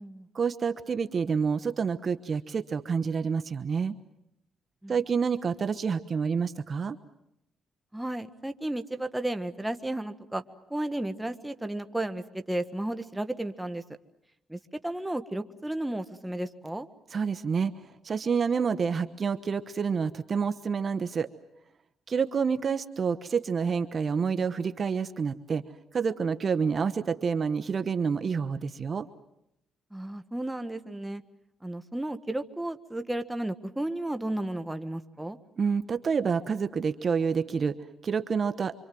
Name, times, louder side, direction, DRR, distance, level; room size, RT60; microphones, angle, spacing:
voice 1, 0.3-3.9 4.9-7.0 17.1-17.7 18.0-21.3 22.1-25.6 25.9-29.1 35.6-37.8 38.0-38.7, right 6 dB, 45° right, 10 dB, 1.1 m, -28 dB
voice 2, 7.9-10.4 10.7-13.8 14.5-16.9 29.9-31.2 31.6-35.4, right 1 dB, 5° right, 8 dB, 1.4 m, -33 dB
26.0 x 25.5 x 7.7 m, 0.82 s
cardioid pair, 90°, 0 cm